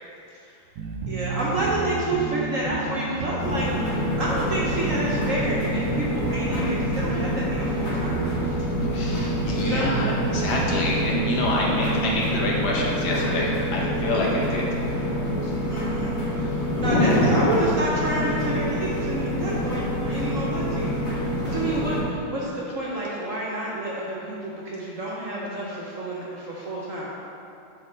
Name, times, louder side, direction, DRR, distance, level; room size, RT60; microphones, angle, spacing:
sound 1, 0.8-13.0, right 4 dB, 80° right, 1.3 m, -32 dB
voice 1, 1.1-8.5 9.6-10.0 15.7-27.1, right 1 dB, 60° right, -5 dB, 0.9 m, -29 dB
sound 2, 3.4-22.0, equal, 40° left, 1.6 m, -27 dB
voice 2, 8.9-14.7 16.7-17.4, left 1 dB, 65° left, -3 dB, 1.4 m, -26 dB
8.2 x 4.1 x 3.9 m, 2.7 s
omnidirectional pair, 2.1 m